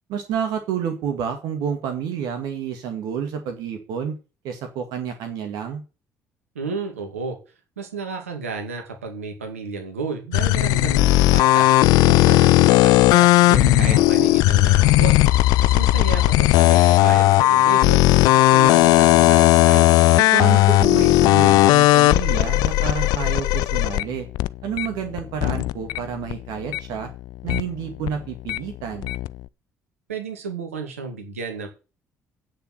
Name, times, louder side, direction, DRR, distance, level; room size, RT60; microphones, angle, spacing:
voice 1, 0.1-4.1 4.4-5.8 13.4-14.3 20.2-24.3 24.6-27.1 27.4-29.1, right 8 dB, 65° right, 5 dB, 2.0 m, -29 dB
voice 2, 6.5-7.4 7.8-13.3 13.8-15.1 15.6-18.0 18.5-19.9 30.1-31.7, right 4 dB, 85° right, 3 dB, 2.4 m, -32 dB
sound 1, 10.3-26.0 26.2-28.6 28.9-29.4, left 17 dB, 60° left, 0.4 m, -16 dB
9.0 x 6.7 x 7.7 m, 0.32 s
figure-of-eight pair, 50°, 7 cm